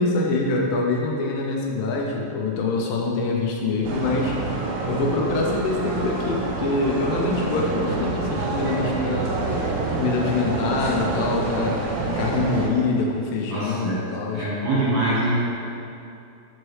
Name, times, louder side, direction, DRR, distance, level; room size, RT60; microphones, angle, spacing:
voice 1, 0.0-4.4 4.9-9.3 9.9-11.8 12.2-14.5, left 3 dB, 80° left, -1 dB, 2.3 m, -25 dB
sound 1, 3.8-12.7, right 3 dB, 75° right, 1.8 m, -27 dB
voice 2, 13.5-14.1 14.3-15.5, right 1 dB, 60° right, -9 dB, 2.1 m, -24 dB
6.5 x 4.6 x 3.2 m, 2.7 s
omnidirectional pair, 3.9 m